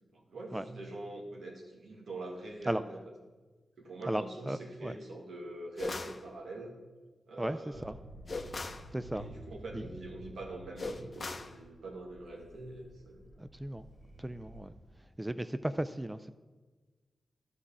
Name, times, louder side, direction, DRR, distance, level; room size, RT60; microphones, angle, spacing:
voice 1, 0.1-3.0 3.8-6.8 7.3-7.9 9.1-13.2, right 2 dB, 75° right, 0 dB, 1.8 m, -44 dB
voice 2, 4.0-5.0 7.4-8.0 8.9-9.3 9.7-9.8 13.4-13.8 14.2-14.7 15.2-16.3, right 1 dB, 15° right, 11 dB, 0.4 m, -35 dB
sound 1, 5.8-6.2 8.3-8.9 10.8-11.6, left 3 dB, 50° left, 0.7 m, -39 dB
sound 2, 7.7-14.6, right 1 dB, 45° right, 2.2 m, -52 dB
11.5 x 4.9 x 7.2 m, 1.3 s
supercardioid pair, 40°, 0 cm